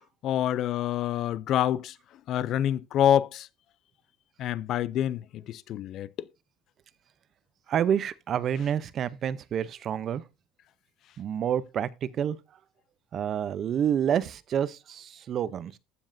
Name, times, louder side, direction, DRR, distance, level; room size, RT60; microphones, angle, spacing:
voice 1, 0.2-2.0 2.3-3.5 4.4-6.1, left 11 dB, 50° left, 0.4 m, -26 dB
voice 2, 7.7-10.2 11.2-12.4 13.1-15.8, right 9 dB, 40° right, 0.6 m, -28 dB
15.0 x 7.1 x 2.6 m
cardioid pair, 150°, 0 cm